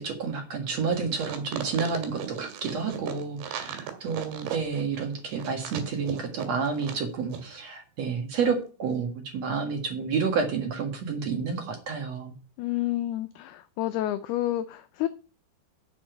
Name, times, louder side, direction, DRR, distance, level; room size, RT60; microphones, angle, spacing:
voice 1, 0.0-12.3, right 5 dB, 55° right, 4 dB, 1.9 m, -30 dB
sound 1, 1.1-7.0 7.3-7.4, right 10 dB, 80° right, 3.9 m, -36 dB
voice 2, 12.6-15.1, left 14 dB, 85° left, 10 dB, 2.3 m, -29 dB
7.3 x 6.9 x 8.1 m, 0.37 s
omnidirectional pair, 5.2 m